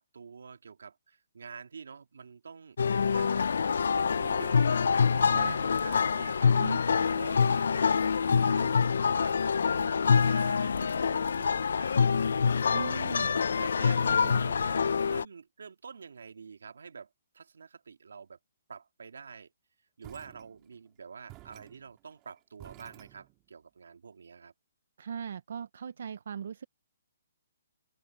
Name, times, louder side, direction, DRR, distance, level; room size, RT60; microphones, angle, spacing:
voice 1, 0.0-3.5 3.9-4.8 5.1-9.4 9.6-12.8 13.5-14.8 15.1-17.1 17.3-18.4 18.7-19.5 20.0-24.5, right 5 dB, 75° right, 2.7 m, -47 dB
sound 1, 2.8-15.2, left 6 dB, 65° left, 0.5 m, -26 dB
voice 2, 5.3-5.6 6.5-6.8 12.7-13.5 14.0-14.4 25.0-26.6, right 7 dB, 50° right, 0.6 m, -39 dB
sound 2, 20.0-20.9 21.3-23.7, right 19 dB, 15° right, 3.0 m, -53 dB
open air
hypercardioid pair, 175°, 0 cm